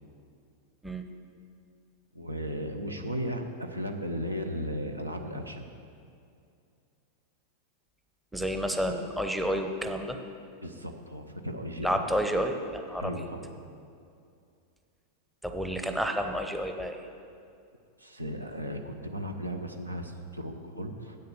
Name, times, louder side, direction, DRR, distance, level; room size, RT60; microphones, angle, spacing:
voice 1, 2.1-5.7 10.6-12.0 13.0-13.5 18.0-21.2, equal, 80° right, 5 dB, 0.7 m, -36 dB
voice 2, 8.3-10.2 11.8-13.1 15.4-17.1, equal, 5° right, 5 dB, 0.7 m, -30 dB
8.5 x 6.7 x 6.8 m, 2.4 s
figure-of-eight pair, 90°, 0 cm